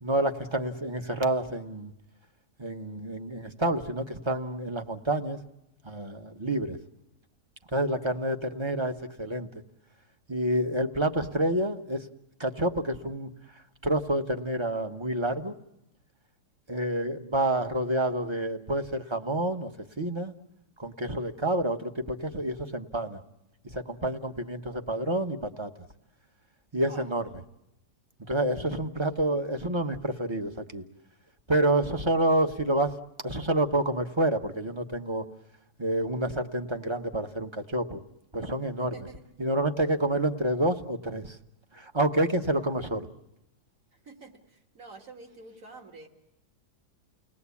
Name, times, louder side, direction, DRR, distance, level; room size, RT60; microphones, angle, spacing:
voice 1, 0.0-1.9 2.6-5.4 5.8-6.8 7.7-9.5 10.3-12.0 12.4-13.3 13.8-15.5 16.7-19.7 20.0-20.3 20.8-23.2 23.7-25.7 26.7-27.3 28.3-30.8 31.5-32.9 33.2-35.2 35.8-38.0 38.3-38.9 39.4-41.4 41.7-43.1, right 1 dB, 20° right, 7 dB, 0.9 m, -28 dB
voice 2, 38.8-39.2 44.0-46.1, right 3 dB, 55° right, 2 dB, 2.6 m, -48 dB
30.0 x 19.5 x 8.4 m, 0.89 s
omnidirectional pair, 1.8 m